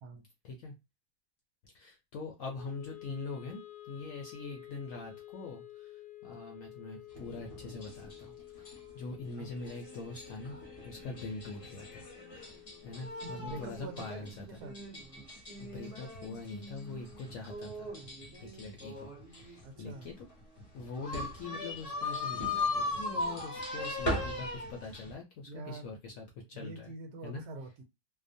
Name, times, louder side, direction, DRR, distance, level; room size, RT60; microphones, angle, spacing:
voice 1, 1.7-3.6 3.9-5.9 6.2-10.6 10.8-12.1 12.4-12.6 12.8-14.4 15.6-17.9 18.4-20.2 20.7-26.9 27.2-27.4, left 3 dB, 70° left, 1 dB, 0.7 m, -43 dB
Wind instrument woodwind instrument, 2.6-14.8, left 15 dB, 90° left, 1.2 m, -51 dB
sound 1, 7.1-25.1, left 2 dB, 45° left, 0.4 m, -39 dB
voice 2, 13.2-14.8 19.6-20.1 25.5-25.9 26.5-27.8, right 3 dB, 75° right, 5 dB, 1.1 m, -45 dB
2.8 x 2.0 x 2.5 m, 0.24 s
omnidirectional pair, 1.8 m